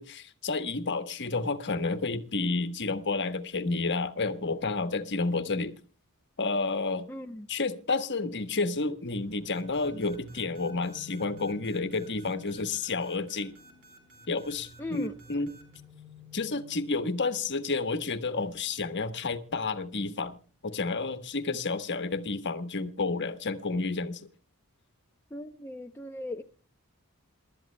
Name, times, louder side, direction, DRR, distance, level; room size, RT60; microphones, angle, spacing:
voice 1, 0.0-5.8 6.4-7.1 7.5-13.5 14.3-15.5 16.3-20.4 20.6-24.3, left 3 dB, 55° left, 1.2 m, -30 dB
voice 2, 7.1-7.5 14.8-15.1 25.3-26.4, left 1 dB, 10° left, 0.6 m, -38 dB
sound 1, 9.1-21.9, left 4 dB, 25° right, 4.1 m, -54 dB
sound 2, 9.5-15.8, right 3 dB, 80° right, 4.4 m, -56 dB
28.0 x 12.5 x 2.2 m
head